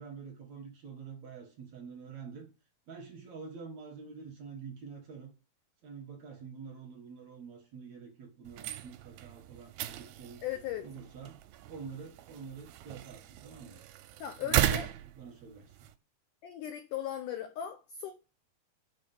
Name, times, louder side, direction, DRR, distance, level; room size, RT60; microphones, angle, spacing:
voice 1, 0.0-2.5 2.9-5.3 5.8-10.4 10.8-11.4 11.7-13.8 14.4-14.8 15.2-15.8, right 5 dB, 55° right, 2.2 m, -47 dB
sound 1, 8.4-15.9, right 13 dB, 80° right, 2.4 m, -36 dB
voice 2, 10.4-10.9 14.2-14.9 16.4-18.1, left 10 dB, 80° left, 1.8 m, -37 dB
6.2 x 5.3 x 6.9 m
omnidirectional pair, 4.6 m